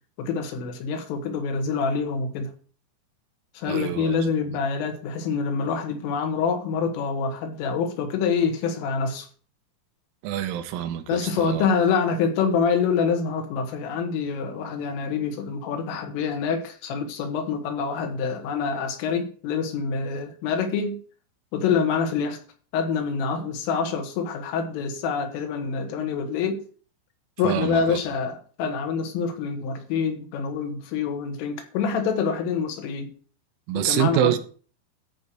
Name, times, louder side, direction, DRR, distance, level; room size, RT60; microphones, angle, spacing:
voice 1, 0.2-2.5 3.6-9.3 11.1-21.0 21.5-22.4 22.7-26.6 27.4-33.1 33.8-34.4, left 5 dB, 75° left, 4.1 m, -26 dB
voice 2, 3.7-4.2 10.2-11.7 27.4-28.0 33.7-34.4, right 11 dB, 80° right, 3.3 m, -26 dB
13.5 x 4.6 x 6.8 m
omnidirectional pair, 5.9 m